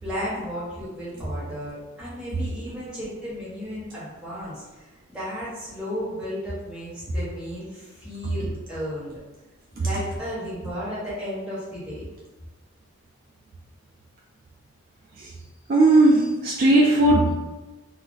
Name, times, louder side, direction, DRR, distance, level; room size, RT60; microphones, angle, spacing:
voice 1, 0.0-9.2 9.8-12.0, equal, 5° right, -10 dB, 1.0 m, -33 dB
voice 2, 15.7-17.4, right 2 dB, 40° right, -3 dB, 0.3 m, -17 dB
2.4 x 2.0 x 3.8 m, 1.1 s
head